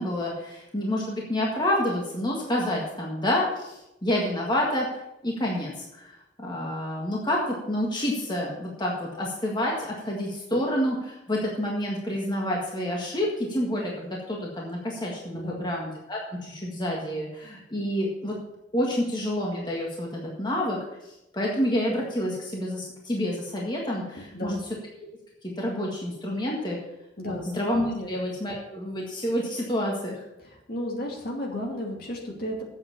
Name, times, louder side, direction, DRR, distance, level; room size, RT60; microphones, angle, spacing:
voice 1, 0.0-4.9 5.2-18.4 18.7-20.8 21.3-24.6 25.4-26.8 27.3-30.2, left 1 dB, 25° left, -2 dB, 1.7 m, -28 dB
voice 2, 15.3-15.7 24.3-24.6 27.2-27.5 27.9-28.1 30.4-32.6, left 1 dB, 55° left, -1 dB, 2.5 m, -33 dB
8.1 x 8.0 x 6.8 m, 0.90 s
head